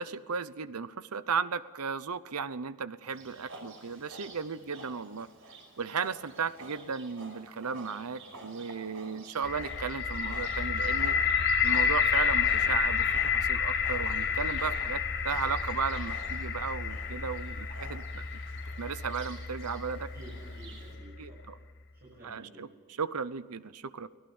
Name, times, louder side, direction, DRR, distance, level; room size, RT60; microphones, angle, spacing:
voice 1, 0.0-5.3 5.8-11.2 11.6-18.2 18.8-20.1 21.2-21.6 22.2-24.1, right 5 dB, 85° right, 15 dB, 0.8 m, -35 dB
Livestock farm animals working animals, 3.0-21.0, right 2 dB, 60° right, 5.9 m, -50 dB
sound 1, 9.4-21.3, left 7 dB, 50° left, 1.4 m, -30 dB
voice 2, 19.9-21.5 21.9-22.7, right 2 dB, 45° right, -6 dB, 7.3 m, -52 dB
24.5 x 18.0 x 7.2 m, 1.4 s
head